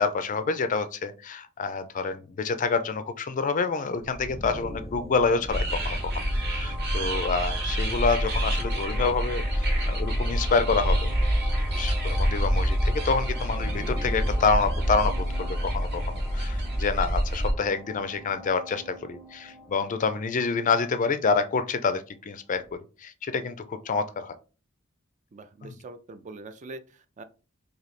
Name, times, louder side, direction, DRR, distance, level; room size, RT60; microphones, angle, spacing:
voice 1, 0.0-6.1 6.5-11.1 11.7-22.6 23.0-24.3 25.6-25.7, left 4 dB, 35° left, 10 dB, 0.4 m, -27 dB
sound 1, 4.0-21.6, left 1 dB, ahead, 0.7 m, -41 dB
sound 2, 5.5-17.5, equal, 50° right, 1.0 m, -27 dB
voice 2, 25.3-27.2, right 2 dB, 35° right, 10 dB, 0.3 m, -43 dB
3.1 x 2.7 x 4.1 m, 0.34 s
head